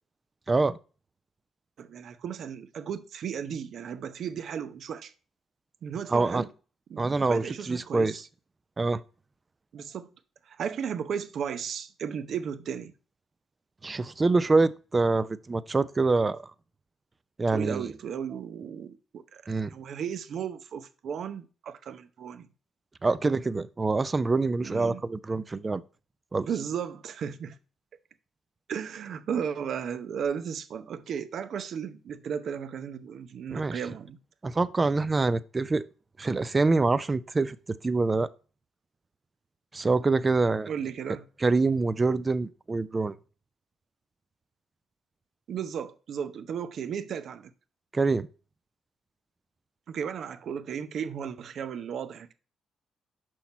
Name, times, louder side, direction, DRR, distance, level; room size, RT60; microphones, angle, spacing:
voice 1, 0.5-0.8 6.1-6.4 7.0-8.2 8.8-9.0 13.8-16.4 17.4-17.9 19.5-19.7 23.0-25.8 26.3-26.5 33.5-33.8 34.4-35.8 36.2-38.3 39.7-40.7 41.4-43.2 47.9-48.3, right 3 dB, 25° right, 0.5 m, -25 dB
voice 2, 1.8-5.1 5.8-6.5 6.9-8.2 9.7-10.1 10.5-12.9 17.5-22.5 24.6-25.0 26.4-27.6 28.7-34.2 40.7-41.3 45.5-47.5 49.9-52.3, right 7 dB, 65° right, 0.7 m, -35 dB
6.3 x 5.8 x 4.3 m
cardioid pair, 90°, 0 cm